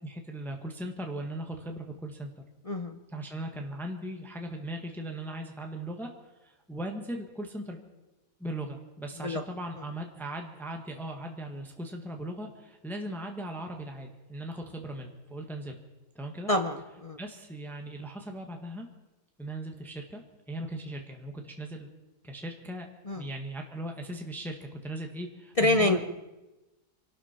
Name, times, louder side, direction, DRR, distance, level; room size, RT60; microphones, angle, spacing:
voice 1, 0.0-2.3 3.1-6.1 6.4-7.8 8.4-15.8 16.1-16.5 17.2-18.9 19.4-20.2 20.5-21.9 22.2-22.9 23.1-26.0, right 1 dB, ahead, 2 dB, 1.4 m, -38 dB
voice 2, 2.7-3.0 9.2-9.4 16.5-17.2 23.1-23.2 25.6-26.0, left 2 dB, 40° left, 5 dB, 0.5 m, -26 dB
25.5 x 12.5 x 4.5 m, 1.1 s
omnidirectional pair, 1.7 m